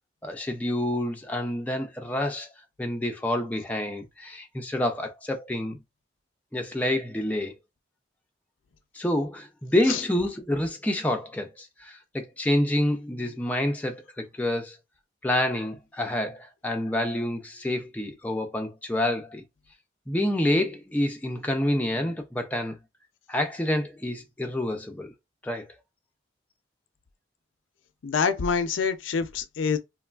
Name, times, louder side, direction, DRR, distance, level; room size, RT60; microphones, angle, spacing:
voice 1, 0.2-2.5 2.8-5.8 6.5-7.5 8.9-14.8 15.2-19.4 20.1-22.7 23.3-25.1 25.4-25.7, left 1 dB, 10° left, 0.3 m, -28 dB
voice 2, 28.0-29.8, left 6 dB, 85° left, 0.4 m, -26 dB
3.0 x 2.3 x 2.3 m
head